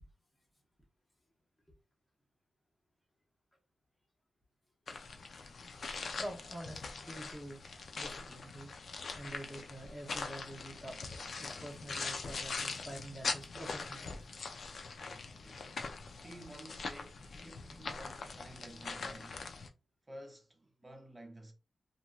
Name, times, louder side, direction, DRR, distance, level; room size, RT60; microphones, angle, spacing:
sound 1, 4.9-19.7, left 4 dB, 55° left, 0.4 m, -42 dB
voice 1, 6.2-7.7 8.0-8.7 9.1-14.1, right 1 dB, 10° left, 0.8 m, -47 dB
voice 2, 15.3-15.7 16.2-19.5 20.1-21.5, right 1 dB, 15° right, 0.6 m, -52 dB
2.9 x 2.5 x 2.3 m
wide cardioid pair, 155°, 0 cm